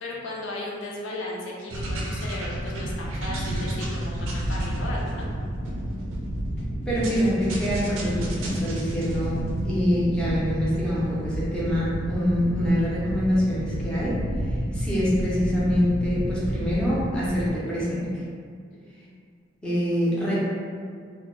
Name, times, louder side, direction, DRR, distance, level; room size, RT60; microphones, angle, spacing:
voice 1, 0.0-5.3 18.7-19.1, left 1 dB, 70° left, -3 dB, 0.4 m, -36 dB
sound 1, 1.7-17.5, equal, 80° right, 0.4 m, -30 dB
voice 2, 6.9-18.1 19.6-20.4, equal, 5° left, -9 dB, 0.4 m, -25 dB
2.1 x 2.0 x 3.0 m, 2.2 s
head